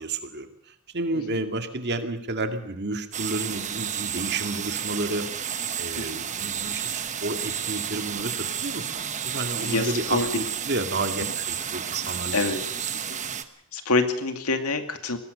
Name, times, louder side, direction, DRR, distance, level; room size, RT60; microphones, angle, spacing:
voice 1, 0.0-5.3 5.8-8.9 9.2-12.4 12.8-12.9, right 2 dB, 50° right, 6 dB, 2.1 m, -31 dB
sound 1, 3.1-13.4, right 8 dB, 35° right, 1.2 m, -31 dB
voice 2, 9.6-10.3 12.3-12.6 13.1-13.2 13.7-15.2, left 3 dB, 85° left, 7 dB, 2.3 m, -26 dB
22.0 x 18.0 x 6.7 m, 0.80 s
head